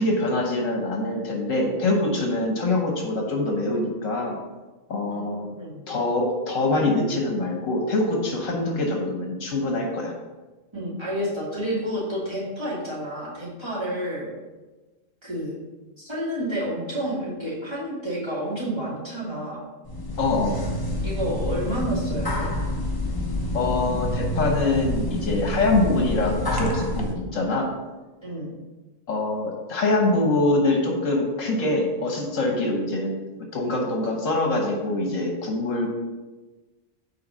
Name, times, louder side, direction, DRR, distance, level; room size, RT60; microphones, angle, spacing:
voice 1, 0.0-4.4 4.9-5.5 5.9-10.1 20.2-20.6 23.5-27.7 29.1-33.1 33.5-35.9, left 2 dB, 70° left, 1 dB, 1.5 m, -24 dB
voice 2, 5.1-5.7 10.7-14.3 15.2-15.6 16.0-19.6 21.0-22.5 28.2-28.5, equal, 20° right, -8 dB, 2.7 m, -30 dB
sound 1, 19.8-27.1, left 1 dB, 20° left, 0.8 m, -28 dB
5.8 x 4.6 x 6.3 m, 1.2 s
omnidirectional pair, 1.4 m